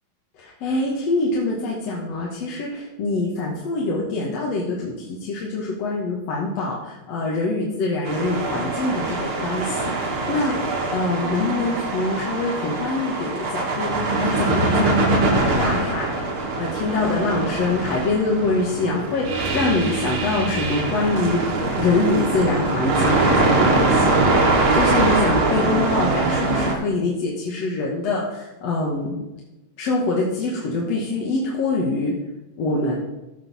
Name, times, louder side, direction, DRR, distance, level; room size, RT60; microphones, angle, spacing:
voice 1, 0.4-10.6 10.9-15.0 15.3-16.1 16.5-19.3 19.5-21.4 21.8-24.3 24.7-29.2 29.8-32.1 32.6-32.9, left 3 dB, 60° left, -3 dB, 2.3 m, -24 dB
sound 1, 8.0-26.8, right 2 dB, 50° right, 2.1 m, -22 dB
16.0 x 5.5 x 4.1 m, 0.97 s
omnidirectional pair, 3.6 m